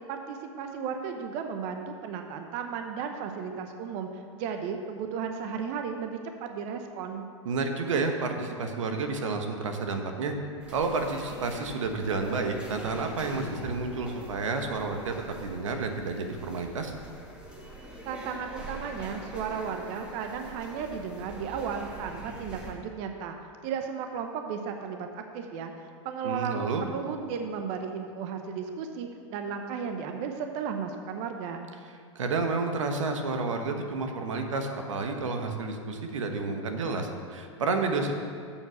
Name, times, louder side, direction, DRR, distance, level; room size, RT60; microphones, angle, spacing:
voice 1, 0.1-7.3 18.1-23.4 23.6-31.7, right 6 dB, 45° right, 5 dB, 0.7 m, -35 dB
voice 2, 7.4-10.3 10.7-15.1 15.4-16.9 26.2-26.8 32.1-38.1, right 4 dB, 85° right, 5 dB, 1.1 m, -30 dB
sound 1, 10.6-22.7, right 1 dB, 5° right, 1.4 m, -44 dB
7.2 x 6.2 x 6.8 m, 2.3 s
hypercardioid pair, 135°, 16 cm